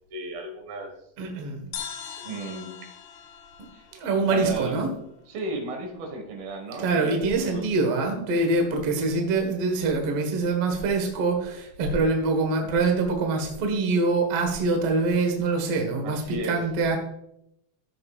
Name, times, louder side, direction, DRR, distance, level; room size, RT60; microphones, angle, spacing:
voice 1, 0.1-0.9 1.2-1.5 2.2-2.8 3.7-3.9 4.3-4.8 5.3-7.6 16.0-16.6, right 2 dB, 75° right, 4 dB, 3.3 m, -34 dB
voice 2, 1.2-1.7 2.2-2.3 3.9-4.9 6.8-17.0, right 3 dB, 55° right, 3 dB, 1.8 m, -24 dB
sound 1, 1.7-5.2, left 8 dB, 85° left, 3.1 m, -41 dB
15.0 x 6.5 x 2.4 m, 0.78 s
omnidirectional pair, 4.5 m